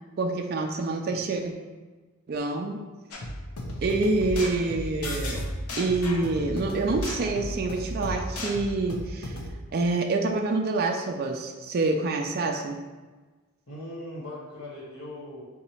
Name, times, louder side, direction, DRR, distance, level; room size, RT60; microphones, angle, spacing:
voice 1, 0.2-1.5 2.3-2.8 3.8-5.4 5.8-9.4 9.7-12.8, right 3 dB, 45° right, 2 dB, 0.3 m, -27 dB
sound 1, 3.1-9.5, equal, 85° left, 0.7 m, -34 dB
voice 2, 13.7-15.4, left 1 dB, 60° left, -7 dB, 1.2 m, -39 dB
4.0 x 2.8 x 4.3 m, 1.3 s
head